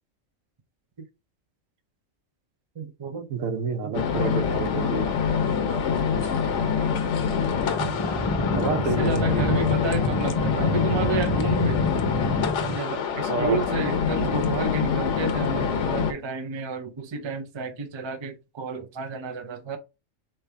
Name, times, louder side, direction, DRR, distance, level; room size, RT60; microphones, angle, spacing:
voice 1, 2.8-3.3 3.8-4.2 7.8-11.9 12.6-19.8, right 4 dB, 40° right, 0.4 m, -32 dB
voice 2, 3.3-5.1 8.5-9.9 13.3-13.6, right 5 dB, 80° right, 1.2 m, -30 dB
sound 1, 3.9-16.1, left 6 dB, 70° left, 1.0 m, -25 dB
sound 2, 7.5-12.8, left 4 dB, 30° left, 0.6 m, -28 dB
4.1 x 3.3 x 3.3 m
omnidirectional pair, 1.3 m